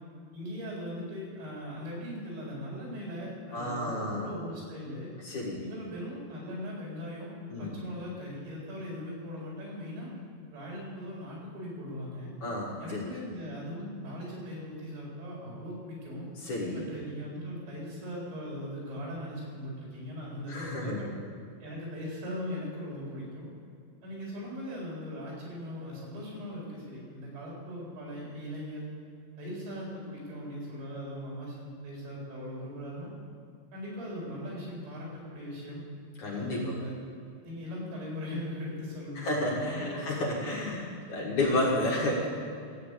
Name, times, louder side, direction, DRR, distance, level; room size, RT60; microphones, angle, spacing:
voice 1, 0.3-5.1 5.6-7.3 7.6-10.1 10.5-12.3 12.8-16.3 16.7-21.1 21.6-23.5 24.0-28.9 29.4-33.1 33.7-35.8 36.3-37.0 37.4-40.5 41.2-41.7, equal, 85° right, -4 dB, 6.5 m, -39 dB
voice 2, 3.5-4.3 5.2-5.6 7.5-7.8 12.4-13.1 16.4-16.9 20.5-21.0 36.2-36.8 39.2-42.3, left 1 dB, 55° left, -3 dB, 2.7 m, -31 dB
14.5 x 8.4 x 8.3 m, 2.3 s
omnidirectional pair, 5.1 m